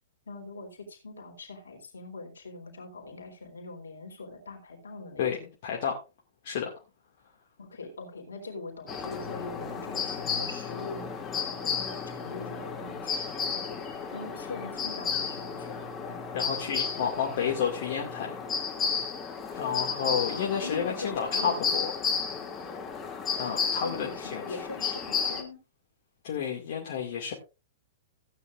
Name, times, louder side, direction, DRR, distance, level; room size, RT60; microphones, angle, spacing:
voice 1, 0.3-5.3 7.6-15.8 16.1-16.3 20.3-21.9 23.8-25.6, left 3 dB, 70° left, 2 dB, 3.8 m, -42 dB
voice 2, 5.2-6.0 6.4-6.7 16.3-18.4 19.5-21.9 23.4-24.8 26.2-27.3, left 7 dB, 50° left, -1 dB, 2.2 m, -31 dB
sound 1, 8.9-25.4, left 6 dB, 20° left, 2.5 m, -33 dB
16.0 x 9.4 x 2.5 m, 0.29 s
figure-of-eight pair, 100°, 0 cm